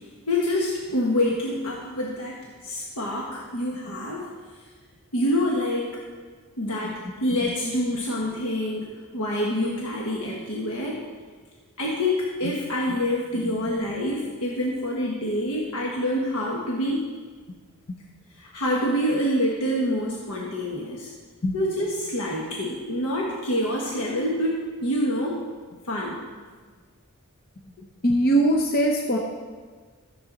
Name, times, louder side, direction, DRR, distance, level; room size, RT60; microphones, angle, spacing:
voice 1, 0.0-4.3 5.1-5.9 6.6-11.0 11.8-17.0 18.3-21.1 21.5-25.4 25.8-26.2, left 1 dB, 80° left, -3 dB, 1.3 m, -26 dB
voice 2, 28.0-29.2, right 1 dB, 40° left, 1 dB, 0.7 m, -20 dB
13.5 x 7.0 x 3.9 m, 1.5 s
head